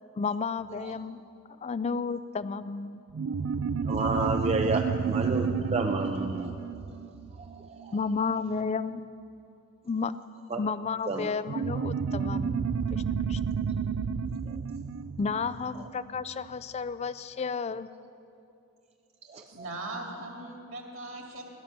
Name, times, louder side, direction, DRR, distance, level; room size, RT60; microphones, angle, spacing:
voice 1, 0.2-1.2 1.6-3.0 7.9-9.0 9.9-10.1 10.6-13.0 13.3-13.4 15.2-17.9, left 5 dB, 30° left, 15 dB, 0.3 m, -32 dB
sound 1, 3.1-8.1 11.5-16.4, right 6 dB, 80° right, 0.4 m, -31 dB
voice 2, 3.9-6.5 7.4-8.0 10.5-10.6 11.1-11.3 14.4-14.6 15.8-15.9 19.3-19.4, right 3 dB, 30° right, 4 dB, 0.5 m, -31 dB
voice 3, 19.5-21.4, right 2 dB, 65° right, 0 dB, 2.3 m, -39 dB
16.5 x 12.0 x 5.8 m, 2.7 s
head